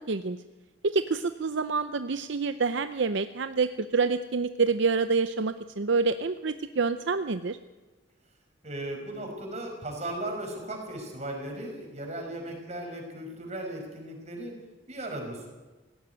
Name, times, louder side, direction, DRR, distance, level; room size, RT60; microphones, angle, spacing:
voice 1, 0.8-7.6, right 4 dB, 65° right, 10 dB, 0.6 m, -27 dB
voice 2, 8.6-14.5 14.9-15.5, right 1 dB, 35° right, 2 dB, 5.2 m, -36 dB
18.0 x 16.0 x 9.3 m, 1.2 s
head